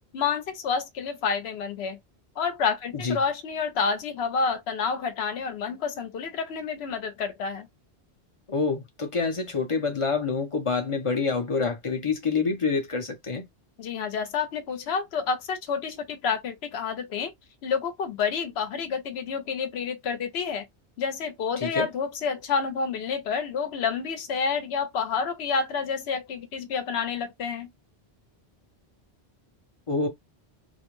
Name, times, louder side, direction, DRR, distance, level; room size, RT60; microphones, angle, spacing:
voice 1, 0.1-2.0 2.4-7.7 13.8-17.3 17.6-20.7 21.0-27.7, left 5 dB, 75° left, 0.9 m, -29 dB
voice 2, 8.5-13.5 21.6-21.9 29.9-30.1, left 4 dB, 35° left, 0.6 m, -27 dB
2.4 x 2.1 x 3.0 m
omnidirectional pair, 1.1 m